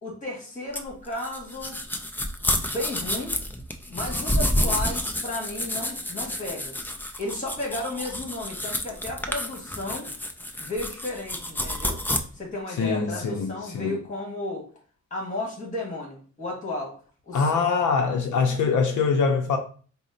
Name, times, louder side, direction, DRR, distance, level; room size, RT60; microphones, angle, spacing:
voice 1, 0.0-1.8 2.5-3.4 3.9-6.7 7.2-10.1 10.6-12.0 12.3-14.6 15.1-16.9 17.3-17.4, left 2 dB, 25° left, 1.6 m, -33 dB
sound 1, 0.7-12.2, left 1 dB, 5° left, 0.3 m, -29 dB
voice 2, 12.8-14.0 17.3-19.6, left 5 dB, 80° left, 0.5 m, -23 dB
4.1 x 2.0 x 3.8 m
wide cardioid pair, 135°, 30 cm